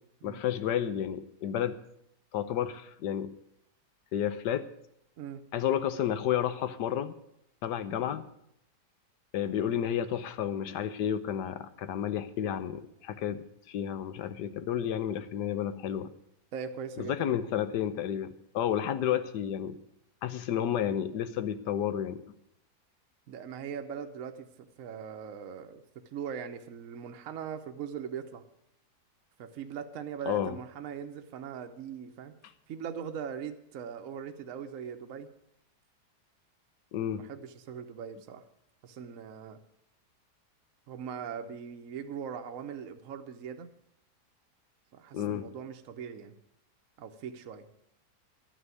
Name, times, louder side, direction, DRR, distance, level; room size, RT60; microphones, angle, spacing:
voice 1, 0.2-1.8 2.3-3.3 4.1-4.7 5.5-7.2 7.6-8.2 9.3-16.1 17.0-19.8 20.2-22.2 30.3-30.5 36.9-37.2 45.1-45.5, left 10 dB, 85° left, 12 dB, 1.4 m, -31 dB
voice 2, 16.5-17.3 23.3-25.8 26.1-28.4 29.4-32.3 32.7-35.3 37.1-38.5 38.8-39.6 40.9-43.7 44.9-46.3 47.0-47.7, right 7 dB, 60° right, 6 dB, 1.2 m, -40 dB
12.0 x 6.2 x 9.3 m, 0.75 s
omnidirectional pair, 1.8 m